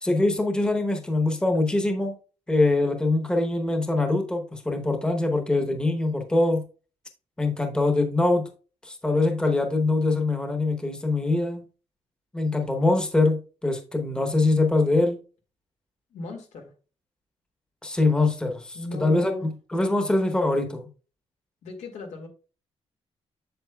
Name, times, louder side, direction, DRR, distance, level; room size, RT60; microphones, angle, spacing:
voice 1, 0.0-2.1 2.5-6.6 7.4-8.5 8.8-11.6 12.3-15.2 17.8-20.9, left 2 dB, 5° left, 4 dB, 0.9 m, -23 dB
voice 2, 16.1-16.7 18.7-19.4 21.6-22.3, left 3 dB, 85° left, 4 dB, 2.1 m, -37 dB
7.8 x 7.4 x 2.3 m, 0.35 s
wide cardioid pair, 175°, 12 cm